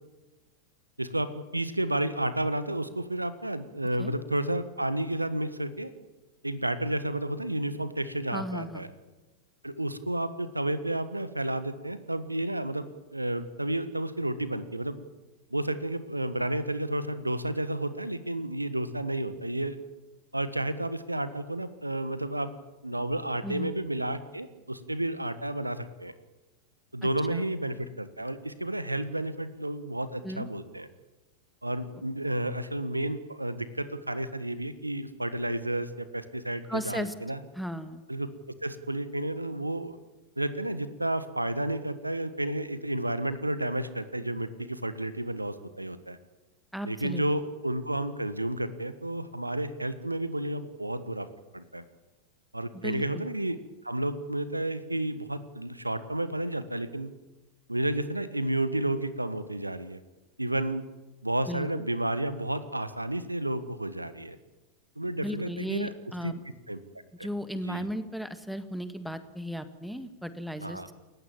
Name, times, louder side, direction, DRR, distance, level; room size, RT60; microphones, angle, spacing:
voice 1, 1.0-5.9 6.4-8.9 9.6-15.0 15.5-19.8 20.3-22.5 22.8-26.1 26.9-30.9 31.6-37.4 38.1-38.3 38.6-40.0 40.4-46.2 46.8-51.3 51.5-51.8 52.5-53.6 53.8-57.1 57.7-60.0 60.4-60.8 61.2-64.4 65.0-65.9 66.2-66.3 66.7-66.8 67.2-67.3 67.6-67.9 70.6-70.9, right 1 dB, 85° right, 13 dB, 1.4 m, -31 dB
voice 2, 8.3-8.9 23.4-23.7 27.0-27.5 30.2-30.5 36.6-37.1 37.5-38.0 46.7-47.2 52.7-53.2 61.5-61.7 65.2-66.4 67.2-70.9, equal, ahead, 10 dB, 1.8 m, -36 dB
29.0 x 15.5 x 8.9 m, 1.1 s
figure-of-eight pair, 90°, 0 cm